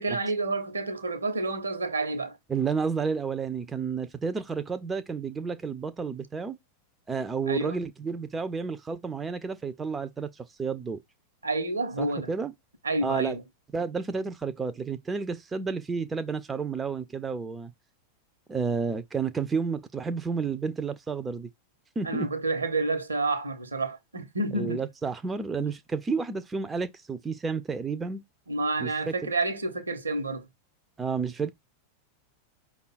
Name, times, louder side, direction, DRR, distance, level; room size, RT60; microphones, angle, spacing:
voice 1, 0.0-2.4 7.4-7.8 11.4-12.3 12.8-13.4 22.0-24.8 28.5-30.5, right 2 dB, 75° right, 1.0 m, -29 dB
voice 2, 2.5-6.6 7.1-11.0 12.0-12.5 13.0-13.4 13.7-17.7 18.5-21.5 22.0-22.3 24.6-28.2 28.8-29.1 31.0-31.5, right 5 dB, 15° right, 0.4 m, -31 dB
5.4 x 2.3 x 4.0 m
figure-of-eight pair, 90°, 0 cm